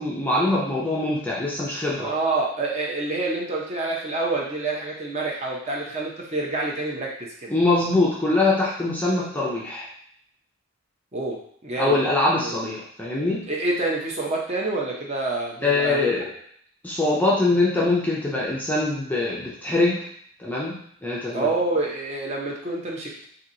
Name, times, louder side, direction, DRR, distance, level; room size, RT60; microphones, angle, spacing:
voice 1, 0.0-2.1 7.5-9.9 11.8-13.5 15.6-16.3 16.8-20.0 20.4-21.5, left 2 dB, 10° left, -5 dB, 0.4 m, -23 dB
voice 2, 2.0-7.5 11.1-12.0 12.4-12.6 13.5-16.1 21.3-23.3, right 2 dB, 30° right, -2 dB, 0.7 m, -27 dB
2.9 x 2.6 x 3.8 m, 0.64 s
head